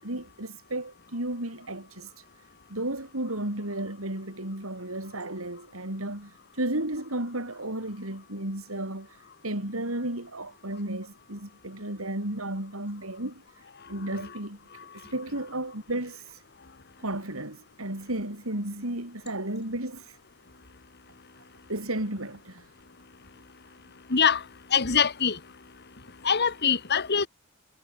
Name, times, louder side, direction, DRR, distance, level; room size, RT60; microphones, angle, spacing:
voice 1, 0.0-2.2 2.7-13.4 13.9-14.6 14.9-16.4 17.0-20.2 21.7-22.7, right 1 dB, 85° right, 7.0 m, -33 dB
voice 2, 24.1-24.4 24.7-25.4 26.2-27.3, left 6 dB, 55° left, 1.8 m, -23 dB
head